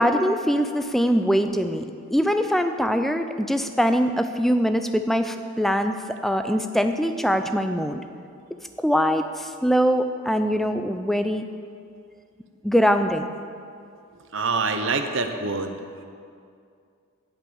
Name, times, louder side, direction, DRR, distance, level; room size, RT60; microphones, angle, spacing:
voice 1, 0.0-6.0 6.2-8.0 8.8-11.5 12.6-13.3, equal, ahead, 7 dB, 0.4 m, -22 dB
voice 2, 14.3-15.8, right 4 dB, 55° right, 6 dB, 0.9 m, -25 dB
16.5 x 5.7 x 7.1 m, 2.4 s
head